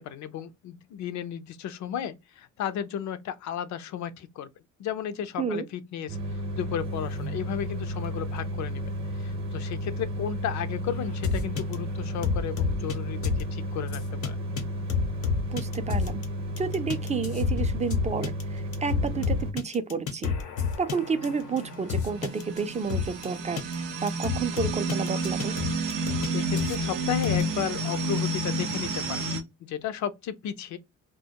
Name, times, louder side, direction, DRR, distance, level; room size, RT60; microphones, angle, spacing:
voice 1, 0.0-4.5 4.8-6.2 6.6-8.8 9.2-14.4 26.3-29.2 29.6-30.8, left 9 dB, 70° left, 0.5 m, -34 dB
sound 1, 6.1-19.5, equal, 45° right, 0.7 m, -33 dB
sound 2, 11.2-11.7 12.2-12.9 13.2-13.4 13.9-14.3 14.6-14.7 14.9-16.2 16.6-23.3 23.6-23.7 24.1-26.3 26.6-26.8 27.2-27.4, left 5 dB, 90° left, 0.9 m, -29 dB
voice 2, 15.5-16.2 16.6-20.3 20.8-25.6, right 5 dB, 25° right, 0.4 m, -30 dB
sound 3, 21.0-29.4, right 1 dB, 90° right, 0.6 m, -30 dB
2.2 x 2.1 x 2.8 m
cardioid pair, 90°, 30 cm